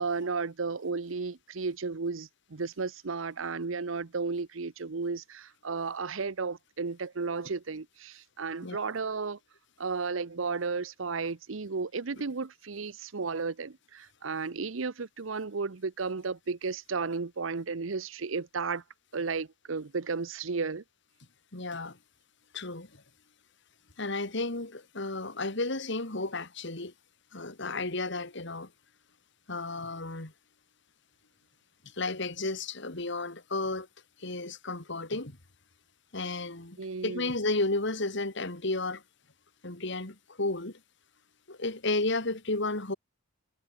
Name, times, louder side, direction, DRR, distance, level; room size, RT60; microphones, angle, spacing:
voice 1, 0.0-9.4 9.8-18.8 19.1-20.8 36.8-37.3, right 4 dB, 80° right, 0.8 m, -33 dB
voice 2, 21.5-22.0 22.5-23.0 24.0-26.9 27.3-28.7 29.5-30.3 32.0-33.9 34.2-35.4 36.1-36.8 37.0-39.0 39.6-40.8 41.5-43.0, left 2 dB, 65° left, 2.9 m, -32 dB
head